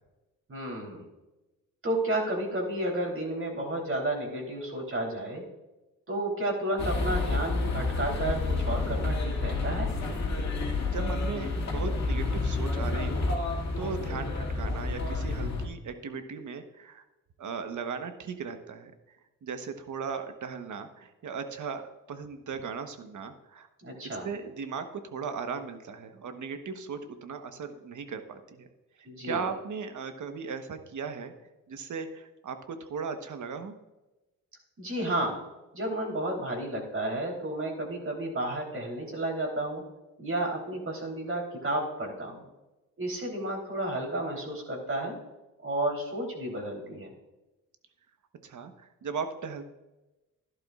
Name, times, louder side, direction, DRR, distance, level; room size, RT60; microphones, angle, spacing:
voice 1, 0.5-1.0 1.8-5.4 6.1-9.9 23.8-24.3 29.0-29.5 34.8-35.4 35.7-39.8 40.2-42.4 43.0-45.2 45.6-47.1, right 1 dB, 40° right, 0 dB, 3.5 m, -32 dB
sound 1, 6.8-15.7, left 3 dB, 50° left, 2.2 m, -29 dB
voice 2, 10.9-17.0 17.4-18.9 19.4-23.7 24.2-28.7 29.0-31.3 31.7-33.7 48.4-49.6, right 5 dB, 60° right, 8 dB, 1.2 m, -37 dB
11.5 x 11.5 x 2.4 m, 1.0 s
cardioid pair, 70°, 34 cm